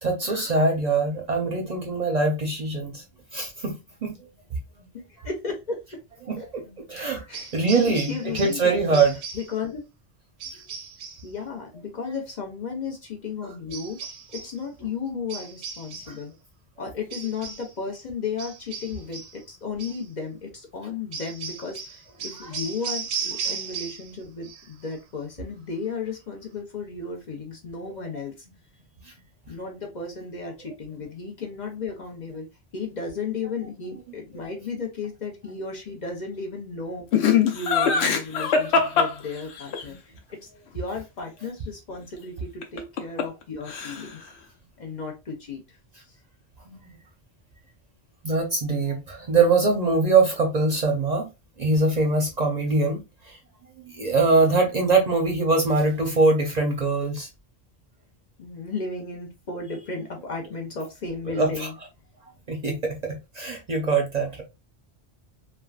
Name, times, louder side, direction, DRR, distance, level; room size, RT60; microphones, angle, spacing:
voice 1, 0.0-3.0 3.3-4.2 6.3-6.6 6.9-7.3 7.5-9.1 13.4-13.5 22.4-22.5 39.9-40.0 46.7-47.0 48.2-51.3 51.6-53.4 53.8-57.3 61.4-61.7 62.5-64.4, right 3 dB, 45° right, 0.6 m, -23 dB
voice 2, 4.9-5.8 6.4-6.5 7.3-9.0 9.3-9.8 11.2-14.0 14.3-16.3 16.8-28.5 29.5-32.5 32.7-44.3 44.8-46.1 54.3-54.7 58.4-61.7, left 4 dB, 50° left, 0.7 m, -34 dB
sound 1, 7.3-8.7 8.9-9.6 10.4-11.3 13.7-14.6 15.3-16.2 17.1-17.7 18.4-19.4 19.8-20.1 21.1-24.2 24.4-24.9, right 6 dB, 80° right, 0.8 m, -36 dB
Laughter, 37.1-39.8 42.6-43.4 43.7-44.2, left 6 dB, 80° left, 0.9 m, -22 dB
3.2 x 2.2 x 2.3 m
omnidirectional pair, 1.1 m